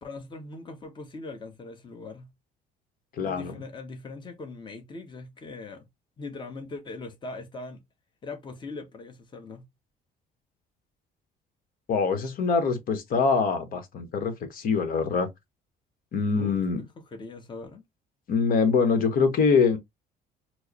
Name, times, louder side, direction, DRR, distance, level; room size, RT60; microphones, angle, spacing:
voice 1, 0.0-2.3 3.2-5.8 6.2-7.8 8.2-9.7 16.3-17.8, left 3 dB, 25° left, 1.0 m, -40 dB
voice 2, 3.2-3.5 11.9-15.3 16.1-16.8 18.3-19.8, left 5 dB, 55° left, 1.1 m, -24 dB
4.6 x 2.0 x 2.8 m
cardioid pair, 110°, 17 cm